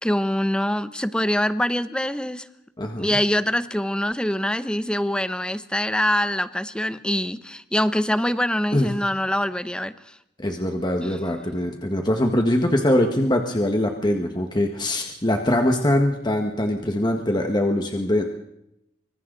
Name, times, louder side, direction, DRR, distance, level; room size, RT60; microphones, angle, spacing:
voice 1, 0.0-2.4 3.0-9.9 11.0-11.2, left 1 dB, 5° left, 12 dB, 0.9 m, -24 dB
voice 2, 2.8-3.2 8.7-8.9 10.4-18.2, left 1 dB, 25° left, 3 dB, 1.7 m, -22 dB
25.5 x 25.0 x 4.1 m, 0.81 s
head